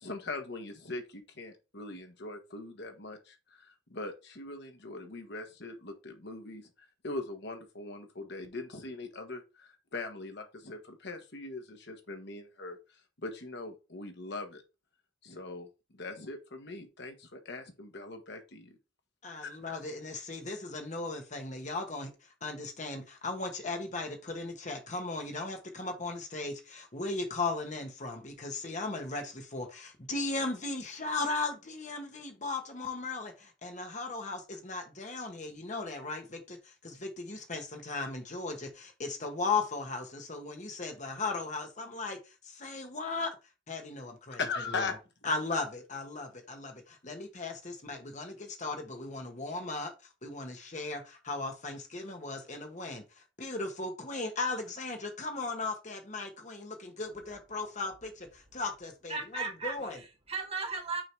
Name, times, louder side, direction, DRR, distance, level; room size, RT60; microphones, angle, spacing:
voice 1, 0.0-6.7 7.0-14.6 15.2-18.8 19.4-19.5 44.4-44.9, left 3 dB, 60° left, 1.4 m, -41 dB
voice 2, 19.2-22.1 22.4-43.4 43.7-44.4 44.7-44.9 45.2-49.9 50.2-53.0 53.4-60.0, left 3 dB, 40° left, 1.4 m, -37 dB
voice 3, 59.1-61.0, right 4 dB, 30° right, 1.7 m, -36 dB
6.3 x 3.9 x 4.7 m
head